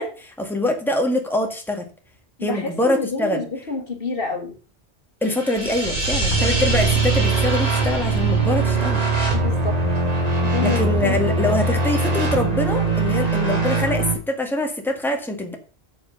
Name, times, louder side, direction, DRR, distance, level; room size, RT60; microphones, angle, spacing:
voice 1, 0.0-1.9 2.4-3.4 5.2-9.1 10.6-15.6, left 1 dB, ahead, 1.8 m, -24 dB
voice 2, 2.4-4.5 9.3-9.8 10.4-11.6, left 3 dB, 60° left, 1.9 m, -28 dB
sound 1, 5.2-14.1, right 3 dB, 35° right, 3.0 m, -21 dB
8.4 x 7.4 x 5.5 m
omnidirectional pair, 1.1 m